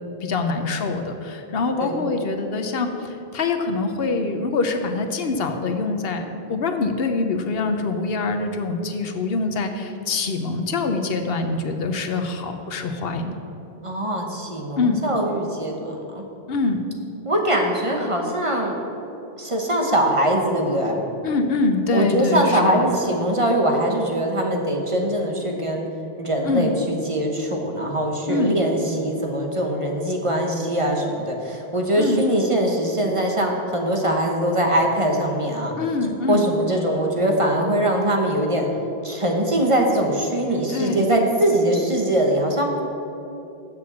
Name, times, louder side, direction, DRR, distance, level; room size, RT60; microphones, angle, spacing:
voice 1, 0.2-13.4 14.8-15.0 16.5-16.8 21.2-22.9 26.4-26.8 28.3-28.7 32.0-32.3 35.8-36.5 40.7-41.2, left 3 dB, 70° left, 5 dB, 1.0 m, -24 dB
voice 2, 13.8-16.2 17.2-18.8 19.4-21.0 21.9-25.9 26.2-35.7 36.3-38.7 39.0-42.8, right 1 dB, 30° right, 1 dB, 1.1 m, -22 dB
7.6 x 6.7 x 7.2 m, 2.9 s
omnidirectional pair, 1.1 m